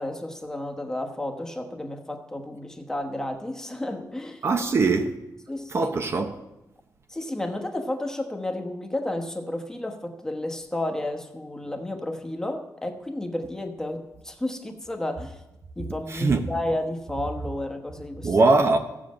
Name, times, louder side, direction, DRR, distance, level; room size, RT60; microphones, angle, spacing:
voice 1, 0.0-4.4 5.5-5.9 7.1-15.4 15.8-18.4, left 1 dB, 10° left, 1.1 m, -32 dB
voice 2, 4.4-5.1 5.7-6.4 16.1-16.5 18.2-18.8, right 3 dB, 40° right, 0.9 m, -21 dB
15.0 x 7.5 x 7.5 m
wide cardioid pair, 160°, 7 cm